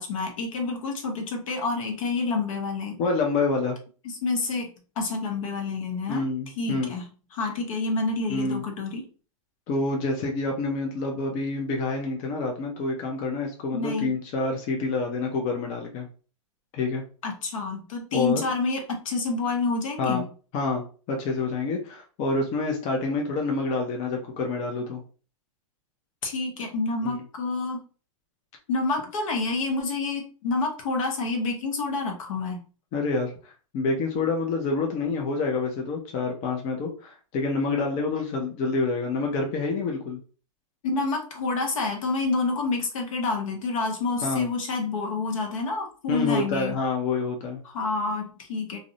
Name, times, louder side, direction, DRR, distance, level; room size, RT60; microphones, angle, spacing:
voice 1, 0.0-3.0 4.0-4.7 5.0-6.2 6.6-7.0 7.3-9.0 13.7-14.1 17.2-20.2 26.2-27.8 28.7-32.6 40.8-46.8 47.6-48.8, left 3 dB, 70° left, 3 dB, 0.8 m, -28 dB
voice 2, 3.0-3.8 6.1-6.9 8.3-8.6 9.7-16.1 16.7-17.0 18.1-18.4 20.0-20.2 20.5-20.8 21.1-25.0 27.0-27.2 32.9-33.3 33.7-40.2 44.2-44.4 46.1-47.6, left 3 dB, 35° left, 1 dB, 0.5 m, -27 dB
2.4 x 2.1 x 2.6 m, 0.38 s
hypercardioid pair, 125°, 18 cm